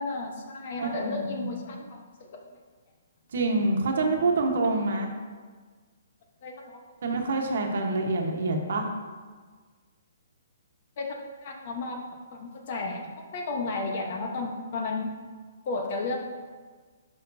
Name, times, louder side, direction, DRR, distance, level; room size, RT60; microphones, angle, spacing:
voice 1, 0.0-2.4 4.6-4.7 6.4-6.8 7.4-7.9 11.0-12.0 12.3-15.1 15.6-16.2, left 3 dB, 45° left, 2 dB, 1.1 m, -33 dB
voice 2, 0.8-1.6 3.3-5.1 7.0-8.9, right 3 dB, 65° right, 2 dB, 1.2 m, -26 dB
11.5 x 5.8 x 2.7 m, 1.5 s
hypercardioid pair, 165°, 0 cm